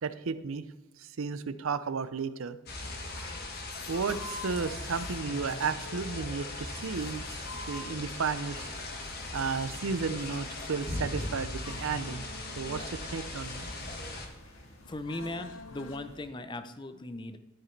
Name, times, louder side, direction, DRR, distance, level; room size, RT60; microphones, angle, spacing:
voice 1, 0.0-0.6 1.2-2.6 3.9-7.2 7.7-8.7 9.3-12.2 12.6-13.7, right 5 dB, 75° right, 13 dB, 0.5 m, -33 dB
sound 1, 2.7-14.3, left 2 dB, 50° left, 1.4 m, -39 dB
sound 2, 2.8-16.1, left 3 dB, 85° left, 0.9 m, -49 dB
sound 3, 4.1-16.3, left 1 dB, 70° left, 1.7 m, -58 dB
voice 2, 14.9-17.4, left 2 dB, 20° left, 10 dB, 0.5 m, -38 dB
13.0 x 4.9 x 4.6 m, 1.1 s
head